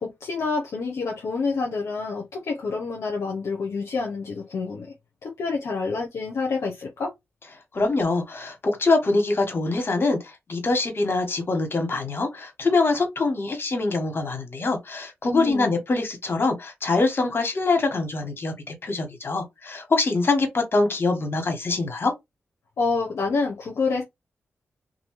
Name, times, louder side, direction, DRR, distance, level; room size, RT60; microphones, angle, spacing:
voice 1, 0.0-4.9 5.2-7.1 15.3-15.7 22.8-24.0, left 4 dB, 75° left, 0.8 m, -27 dB
voice 2, 7.7-22.1, left 3 dB, 50° left, 1.4 m, -24 dB
2.6 x 2.6 x 3.1 m
cardioid pair, 60°, 5 cm